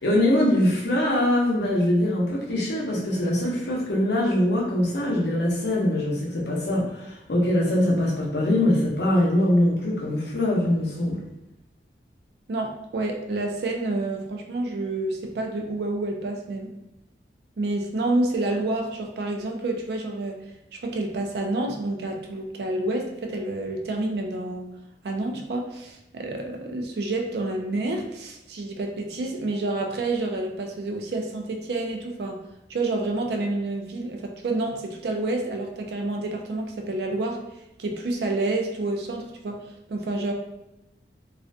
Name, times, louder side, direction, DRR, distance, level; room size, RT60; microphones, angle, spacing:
voice 1, 0.0-11.2, left 1 dB, 65° left, -3 dB, 0.6 m, -23 dB
voice 2, 12.5-16.7 17.6-20.4 20.7-24.7 25.0-32.4 32.7-37.4 37.8-39.6 39.9-40.3, right 2 dB, 60° right, 2 dB, 0.4 m, -28 dB
2.4 x 2.1 x 2.5 m, 0.91 s
head